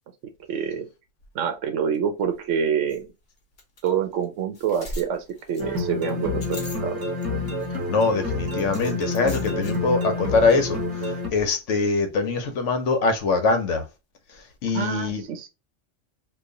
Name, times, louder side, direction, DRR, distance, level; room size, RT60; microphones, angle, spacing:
voice 1, 0.5-0.9 1.3-3.1 3.8-7.0 14.7-15.5, right 7 dB, 75° right, 0.9 m, -27 dB
sound 1, 1.9-2.0 2.3-2.4 2.9-3.0 3.6-3.9 4.2-4.3 4.5-7.2 7.6-8.1 8.6-9.8, left 1 dB, 45° left, 1.0 m, -39 dB
sound 2, 5.6-11.3, left 2 dB, 20° right, 0.8 m, -28 dB
voice 2, 7.9-13.8 14.6-15.2, left 4 dB, 70° left, 1.1 m, -23 dB
3.0 x 2.3 x 3.7 m
omnidirectional pair, 1.3 m